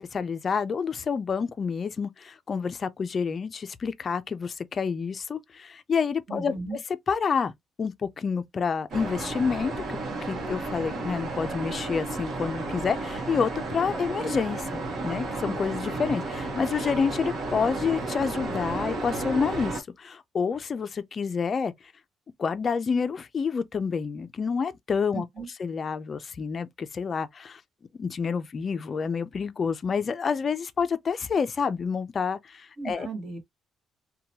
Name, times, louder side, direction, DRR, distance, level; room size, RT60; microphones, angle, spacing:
voice 1, 0.0-6.5 7.1-7.5 7.8-21.7 22.4-25.2 25.6-27.6 28.0-33.1, left 5 dB, 35° left, 0.3 m, -28 dB
voice 2, 6.3-6.8 25.1-25.5 32.8-33.4, right 3 dB, 40° right, 1.3 m, -36 dB
sound 1, 8.9-19.8, right 2 dB, 60° right, 0.9 m, -33 dB
2.9 x 2.2 x 2.7 m
cardioid pair, 155°, 0 cm